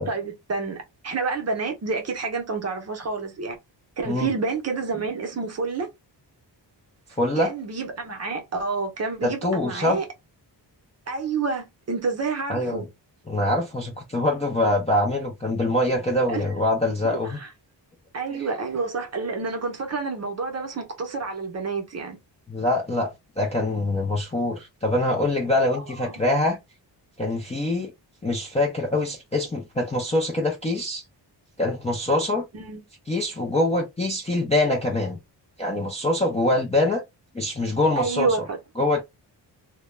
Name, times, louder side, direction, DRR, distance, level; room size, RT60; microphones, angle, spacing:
voice 1, 0.0-3.6 4.0-5.9 7.4-10.0 11.1-12.9 16.3-16.4 17.2-17.5 18.1-22.2 26.0-26.1 32.5-32.8 38.0-38.6, right 4 dB, 35° right, 0.6 m, -29 dB
voice 2, 7.2-7.5 9.2-10.0 12.5-12.9 13.3-17.4 18.3-18.5 22.5-26.6 27.2-27.9 28.2-31.0 31.6-32.4 33.1-35.2 35.6-37.0 37.3-38.4 38.8-39.0, left 1 dB, 15° left, 0.3 m, -24 dB
2.2 x 2.1 x 3.0 m
wide cardioid pair, 180°, 44 cm